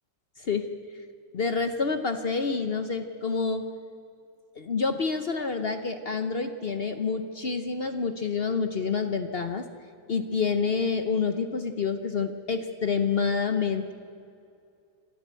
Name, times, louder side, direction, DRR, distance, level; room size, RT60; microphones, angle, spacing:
voice 1, 1.3-3.6 4.6-9.6 10.1-13.9, left 5 dB, 60° left, 8 dB, 0.6 m, -28 dB
27.5 x 13.0 x 8.3 m, 2.5 s
omnidirectional pair, 2.3 m